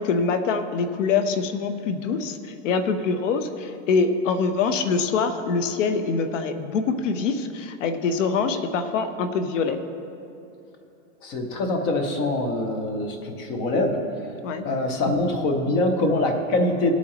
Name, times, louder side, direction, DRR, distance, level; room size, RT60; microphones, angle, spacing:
voice 1, 0.0-9.8 14.4-14.6, left 5 dB, 70° left, 9 dB, 1.0 m, -24 dB
voice 2, 11.2-14.1 14.6-16.9, left 2 dB, 15° left, 4 dB, 0.3 m, -24 dB
19.0 x 8.4 x 2.9 m, 2.8 s
supercardioid pair, 155°, 39 cm